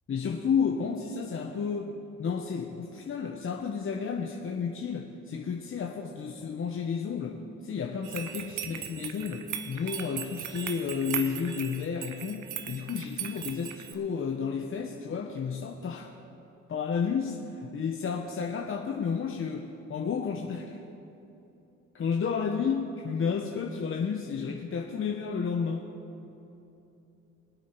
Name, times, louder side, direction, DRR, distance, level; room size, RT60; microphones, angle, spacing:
voice 1, 0.1-16.1 16.7-20.8 21.9-25.9, left 6 dB, 45° left, 2 dB, 1.0 m, -32 dB
sound 1, 8.0-13.9, right 9 dB, 75° right, 1.1 m, -38 dB
24.0 x 8.2 x 4.5 m, 2.9 s
cardioid pair, 90°, 30 cm